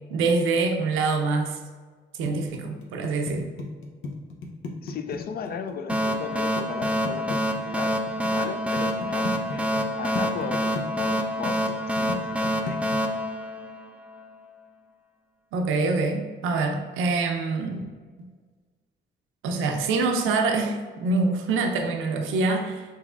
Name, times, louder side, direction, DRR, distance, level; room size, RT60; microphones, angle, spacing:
voice 1, 0.1-1.6 2.2-3.5 15.5-17.8 19.4-22.8, right 3 dB, 90° right, 3 dB, 0.6 m, -25 dB
sound 1, 2.3-8.3 8.8-9.9 10.2-13.0, left 3 dB, 85° left, 0.8 m, -34 dB
voice 2, 4.8-8.0 8.3-11.6 11.9-12.9, left 6 dB, 50° left, 8 dB, 0.4 m, -36 dB
sound 2, 5.9-14.2, equal, 5° right, 0.4 m, -27 dB
5.5 x 3.5 x 2.4 m, 1.5 s
cardioid pair, 90°, 20 cm